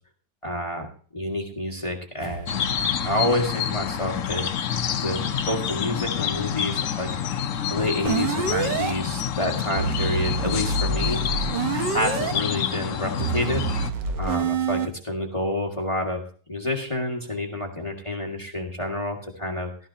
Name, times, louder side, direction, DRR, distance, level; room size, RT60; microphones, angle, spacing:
voice 1, 0.4-0.9 1.1-2.7 3.0-4.4 5.0-5.2 5.4-7.4 7.7-11.4 11.7-13.6 14.2-16.2 16.5-19.7, left 1 dB, 15° left, 1 dB, 1.7 m, -28 dB
sound 1, 2.2-6.7, right 4 dB, 50° right, 4.6 m, -45 dB
sound 2, 2.5-13.9, left 8 dB, 55° left, 1.0 m, -28 dB
sound 3, 8.1-8.9 9.8-12.3 13.2-14.9, right 6 dB, 75° right, 1.6 m, -26 dB
15.0 x 13.5 x 2.8 m, 0.42 s
omnidirectional pair, 1.9 m